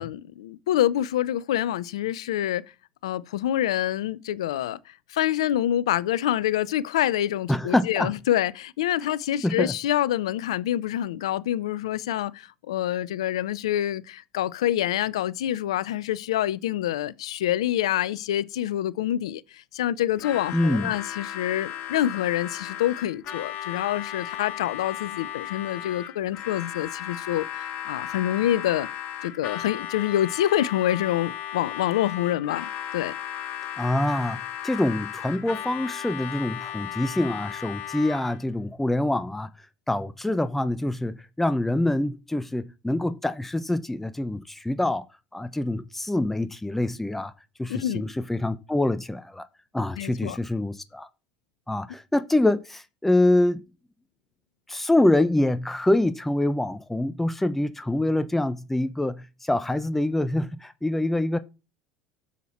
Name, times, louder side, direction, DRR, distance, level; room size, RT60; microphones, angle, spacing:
voice 1, 0.0-2.6 3.0-28.9 29.2-33.2 47.7-48.0 50.0-50.4, left 12 dB, 75° left, 0.6 m, -26 dB
voice 2, 7.5-8.1 9.4-9.7 20.5-20.9 33.8-34.4 34.6-39.5 39.9-45.0 45.3-47.3 47.6-49.4 49.7-51.1 51.7-53.6 54.7-61.4, left 1 dB, 5° left, 0.8 m, -25 dB
Harmonica, 20.2-38.4, left 11 dB, 55° left, 1.5 m, -35 dB
12.5 x 7.3 x 4.3 m
hypercardioid pair, 75°, 3 cm